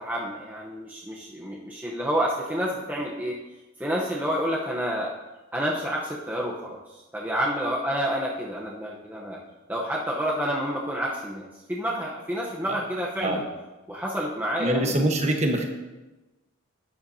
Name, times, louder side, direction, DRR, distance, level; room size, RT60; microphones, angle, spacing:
voice 1, 0.0-3.4 3.8-5.1 5.5-6.8 7.1-9.4 9.7-13.4 13.9-15.1, equal, 10° right, -3 dB, 0.9 m, -29 dB
voice 2, 14.6-15.6, right 1 dB, 30° right, 3 dB, 1.2 m, -24 dB
12.0 x 10.0 x 2.8 m, 1.1 s
head